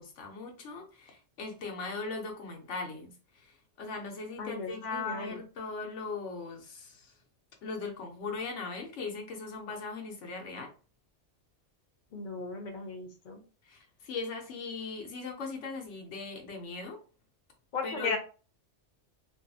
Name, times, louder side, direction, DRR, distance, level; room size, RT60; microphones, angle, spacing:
voice 1, 0.0-7.1 7.6-10.7 13.6-17.0 17.8-18.1, left 4 dB, 90° left, 1.1 m, -39 dB
voice 2, 4.4-5.4 12.1-13.4 17.7-18.2, left 4 dB, 50° left, 0.6 m, -36 dB
2.7 x 2.4 x 2.6 m
omnidirectional pair, 1.2 m